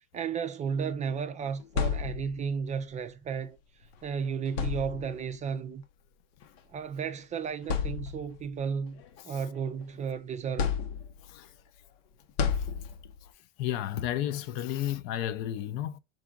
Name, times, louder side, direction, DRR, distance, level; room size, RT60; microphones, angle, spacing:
voice 1, 0.1-3.6 4.0-5.8 6.7-10.7, right 6 dB, 25° right, 0.3 m, -33 dB
sound 1, 1.4-2.6 3.8-4.0 4.5-5.3 6.4-6.6 7.1-7.2 7.6-8.4 8.9-10.0 10.6-11.4 12.4-13.3, left 6 dB, 85° left, 0.9 m, -32 dB
voice 2, 11.2-11.5 12.6-12.7 13.2-13.3 13.6-16.0, left 12 dB, 60° left, 0.6 m, -33 dB
4.7 x 2.4 x 3.7 m
supercardioid pair, 115°, 30 cm